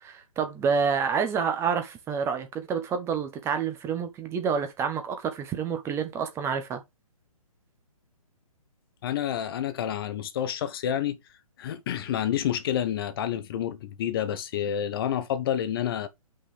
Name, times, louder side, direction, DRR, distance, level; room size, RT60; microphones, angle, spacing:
voice 1, 0.0-6.8, right 6 dB, 15° right, 1.0 m, -28 dB
voice 2, 9.0-11.2 11.6-16.1, left 10 dB, 40° left, 1.1 m, -29 dB
5.6 x 5.5 x 5.0 m
figure-of-eight pair, 135°, 19 cm